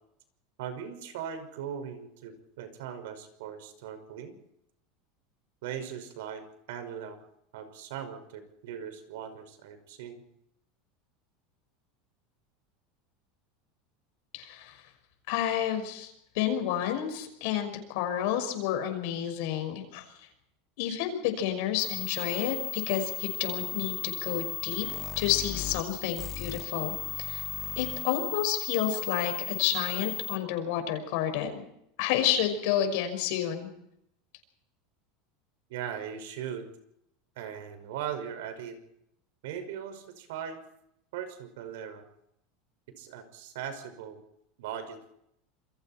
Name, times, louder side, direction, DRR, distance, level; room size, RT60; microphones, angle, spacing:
voice 1, 0.6-4.4 5.6-7.2 7.5-10.2 35.7-36.7 37.4-38.8 39.4-40.6 41.1-42.0 43.0-44.2 44.6-45.1, right 8 dB, 80° right, 9 dB, 5.6 m, -39 dB
voice 2, 14.3-14.8 15.3-20.1 20.8-24.9 25.2-27.4 27.8-31.6 32.0-33.7, left 10 dB, 65° left, 6 dB, 5.7 m, -30 dB
sound 1, 21.8-30.4, left 9 dB, 30° left, 2.2 m, -36 dB
28.0 x 23.0 x 4.5 m, 0.76 s
supercardioid pair, 155°, 0 cm